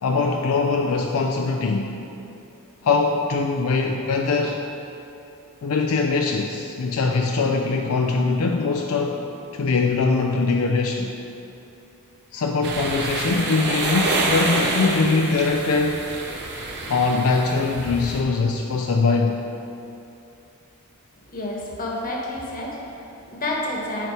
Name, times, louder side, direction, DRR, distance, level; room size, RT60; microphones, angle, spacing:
voice 1, 0.0-1.9 2.8-4.6 5.6-9.2 9.5-11.1 12.3-16.0 16.9-19.4, left 4 dB, 75° left, 2 dB, 0.4 m, -22 dB
sound 1, 12.6-18.2, right 2 dB, 50° right, 0.9 m, -27 dB
voice 2, 21.3-24.1, left 1 dB, 40° left, -2 dB, 1.2 m, -30 dB
9.4 x 4.5 x 4.8 m, 2.8 s
head